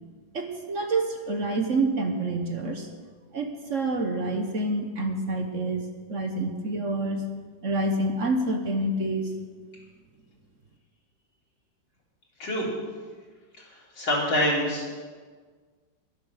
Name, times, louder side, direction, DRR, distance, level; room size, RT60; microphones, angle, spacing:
voice 1, 0.3-2.9 3.3-7.2 7.6-9.3, right 2 dB, 45° right, 5 dB, 1.3 m, -27 dB
voice 2, 13.6-14.9, left 1 dB, 80° left, -4 dB, 4.6 m, -26 dB
21.0 x 7.5 x 6.6 m, 1.5 s
omnidirectional pair, 2.0 m